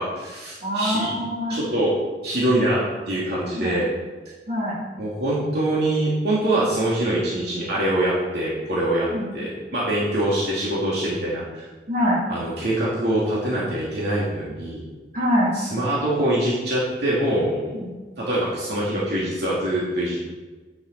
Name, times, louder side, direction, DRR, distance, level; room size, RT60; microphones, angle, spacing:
voice 1, 0.0-1.1 1.5-1.9 2.2-3.9 5.0-9.1 9.3-11.6 12.3-14.8 15.5-17.7 18.2-20.2, right 1 dB, 65° right, -7 dB, 2.6 m, -24 dB
voice 2, 0.6-1.6 3.4-3.7 4.5-4.8 9.1-9.4 11.9-12.2 15.1-15.5 17.7-17.9, equal, 50° right, -5 dB, 3.1 m, -24 dB
9.9 x 8.0 x 4.3 m, 1.3 s
head